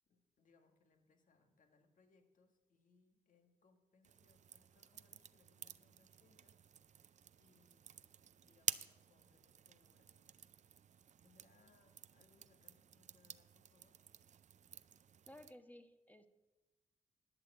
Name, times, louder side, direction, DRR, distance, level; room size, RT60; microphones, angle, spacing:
voice 1, 0.1-6.6 7.4-8.1 8.4-10.5 11.2-14.0, left 4 dB, 65° left, 5 dB, 1.7 m, -73 dB
sound 1, 4.0-15.5, right 8 dB, 55° right, 0.5 m, -50 dB
voice 2, 15.3-16.3, left 1 dB, 10° left, 7 dB, 1.3 m, -57 dB
12.0 x 6.7 x 7.6 m, 1.1 s
supercardioid pair, 50°, 14 cm